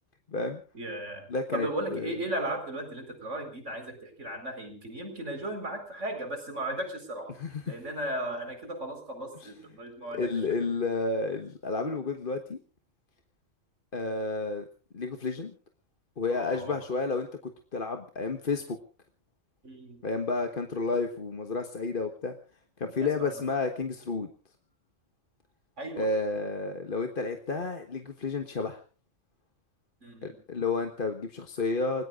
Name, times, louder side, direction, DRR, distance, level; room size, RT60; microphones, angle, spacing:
voice 1, 0.7-7.3 7.6-10.7 16.3-16.8 19.6-20.0 23.0-23.5 25.8-26.1 30.0-30.4, right 1 dB, 65° right, 6 dB, 4.7 m, -36 dB
voice 2, 1.3-2.1 7.3-7.7 9.4-9.5 10.1-12.6 13.9-14.6 14.9-15.5 16.2-18.8 20.0-22.3 22.8-24.3 26.0-28.8 30.2-32.0, left 3 dB, 45° left, 5 dB, 1.4 m, -31 dB
30.0 x 19.5 x 2.5 m, 0.36 s
omnidirectional pair, 1.3 m